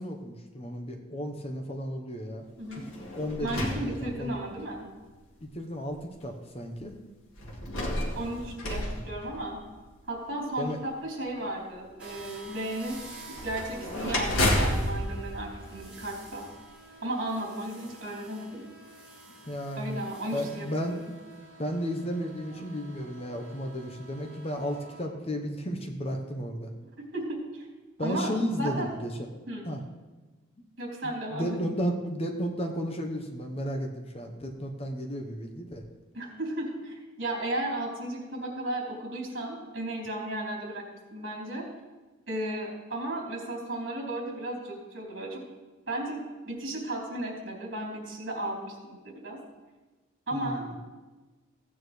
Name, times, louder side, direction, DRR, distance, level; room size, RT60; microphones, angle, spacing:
voice 1, 0.0-2.4 3.1-4.4 5.5-7.0 10.6-10.8 19.5-20.0 20.3-21.0 21.6-26.7 28.0-29.3 29.6-29.8 31.0-35.8 50.3-50.6, equal, 30° left, 4 dB, 0.9 m, -33 dB
sound 1, 2.6-4.7 5.4-5.5 7.4-9.9 13.3-16.4, left 1 dB, 80° left, 2.0 m, -31 dB
voice 2, 2.6-2.9 3.4-4.9 8.2-9.6 10.1-13.0 13.3-16.4 17.0-18.6 19.8-21.0 27.0-27.7 28.0-28.9 29.5-29.7 30.8-31.6 36.1-40.8 41.1-41.6 42.3-45.4 45.9-49.4 50.3-50.7, right 1 dB, 65° right, -3 dB, 3.5 m, -34 dB
sound 2, 12.0-25.0, right 2 dB, 5° right, 4.3 m, -49 dB
16.0 x 9.1 x 3.2 m, 1.2 s
head